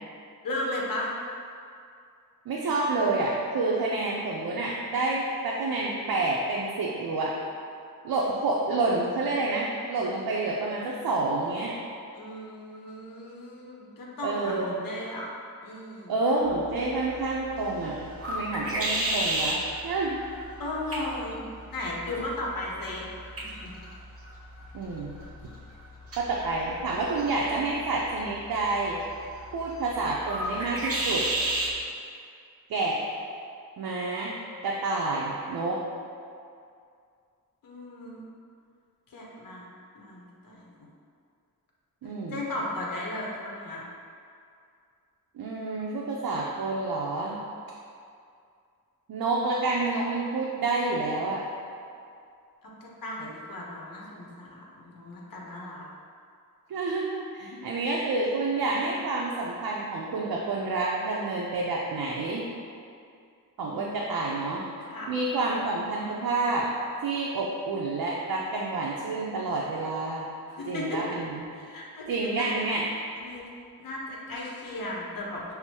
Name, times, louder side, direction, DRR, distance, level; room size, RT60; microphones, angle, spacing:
voice 1, 0.4-1.1 12.1-15.3 15.6-16.1 20.6-21.4 21.7-23.0 23.4-23.7 37.6-38.2 39.1-39.7 39.9-40.9 42.3-43.8 52.8-55.8 57.4-57.6 63.6-63.9 64.8-65.1 70.5-71.0 71.5-72.5 73.2-73.5 73.8-75.5, left 1 dB, 65° left, -3 dB, 0.7 m, -36 dB
voice 2, 2.5-7.4 8.0-11.7 14.2-14.7 16.1-20.2 24.7-25.1 26.2-29.0 29.5-31.3 32.7-33.0 33.8-34.3 34.6-35.8 42.0-42.4 45.3-47.4 49.1-51.4 56.7-62.4 63.6-64.6 65.1-66.7 67.0-70.3 70.7-71.4 72.1-72.8, right 3 dB, 75° right, -3 dB, 0.5 m, -28 dB
sound 1, 16.4-31.8, right 1 dB, 40° right, 0.8 m, -34 dB
6.0 x 2.0 x 2.8 m, 2.4 s
wide cardioid pair, 85°, 36 cm